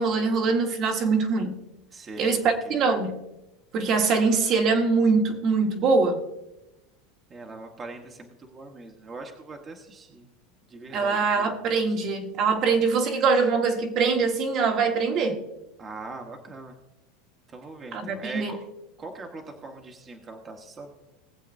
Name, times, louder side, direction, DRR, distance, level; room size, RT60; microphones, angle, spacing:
voice 1, 0.0-1.5 2.2-3.2 3.7-6.2 10.9-15.4 17.9-18.5, right 4 dB, 40° right, 1.4 m, -23 dB
voice 2, 1.9-2.4 2.6-2.8 7.3-10.3 10.7-11.5 15.8-16.7 17.5-18.6 19.0-20.9, right 3 dB, 20° right, 1.2 m, -41 dB
20.0 x 7.6 x 2.6 m
supercardioid pair, 135°, 0 cm